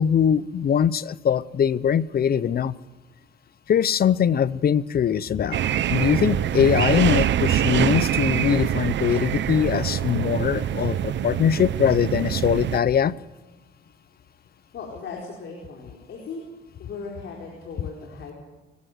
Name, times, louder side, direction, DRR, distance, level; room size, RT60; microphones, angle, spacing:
voice 1, 0.0-2.8 3.7-5.6 5.9-13.2, left 8 dB, 50° left, 19 dB, 0.7 m, -22 dB
sound 1, 5.5-12.8, right 10 dB, 65° right, 1.0 m, -24 dB
voice 2, 14.7-16.4 16.8-18.3, left 4 dB, 65° left, -1 dB, 4.6 m, -37 dB
24.0 x 15.5 x 8.1 m, 1.1 s
cardioid pair, 90°, 20 cm